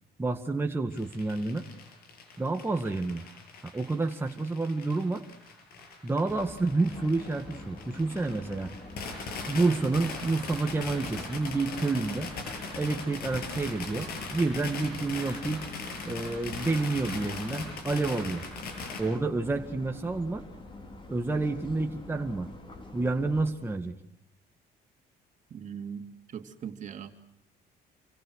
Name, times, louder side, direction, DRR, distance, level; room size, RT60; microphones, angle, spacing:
voice 1, 0.2-1.6 2.4-3.2 3.7-5.2 6.0-8.7 9.5-12.3 12.8-15.6 16.0-18.4 19.0-20.4 21.1-22.5 22.9-23.9, right 3 dB, 15° right, 3 dB, 2.0 m, -29 dB
sound 1, 0.9-19.0, left 4 dB, 65° left, 8.0 m, -40 dB
sound 2, 6.3-23.5, left 2 dB, 30° left, 4.8 m, -46 dB
voice 2, 25.5-27.2, right 7 dB, 45° right, 6 dB, 3.0 m, -40 dB
28.0 x 24.5 x 6.5 m, 0.76 s
cardioid pair, 110°, 17 cm